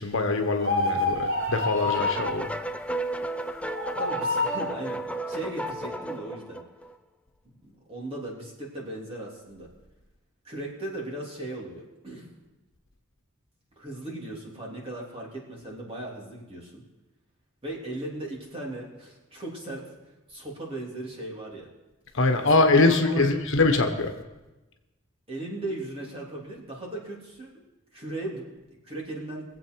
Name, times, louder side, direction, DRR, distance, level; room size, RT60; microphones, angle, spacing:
voice 1, 0.0-2.5 22.1-24.1, left 3 dB, 65° left, 5 dB, 1.3 m, -23 dB
sound 1, 0.6-2.4 3.7-4.7, left 2 dB, 65° right, 1.6 m, -27 dB
sound 2, 1.9-6.9, right 1 dB, 5° left, 0.4 m, -33 dB
voice 2, 4.0-6.6 7.4-9.7 10.4-12.3 13.8-16.8 17.6-19.8 20.3-21.7 22.4-23.3 25.3-27.6 27.9-28.4 28.8-29.4, right 1 dB, 30° right, -4 dB, 3.3 m, -37 dB
22.5 x 8.0 x 4.7 m, 1.1 s
head